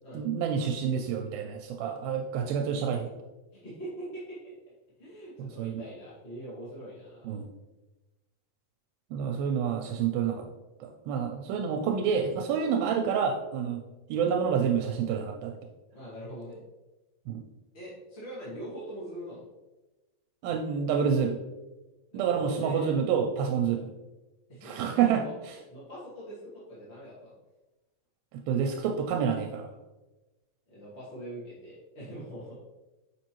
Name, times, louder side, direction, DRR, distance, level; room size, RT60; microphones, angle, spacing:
voice 1, 0.1-3.1 5.4-5.8 7.3-7.4 9.1-10.4 10.8-13.8 14.1-15.5 17.3-17.4 20.4-21.4 22.1-23.9 24.6-25.2 28.3-29.7, right 7 dB, 85° right, 3 dB, 2.3 m, -28 dB
voice 2, 3.5-4.5 5.0-7.4 15.9-16.6 17.7-19.4 22.1-22.9 24.5-25.3 25.7-27.3 30.7-32.6, right 1 dB, 30° left, -9 dB, 1.3 m, -43 dB
6.7 x 5.2 x 3.0 m, 1.1 s
omnidirectional pair, 4.2 m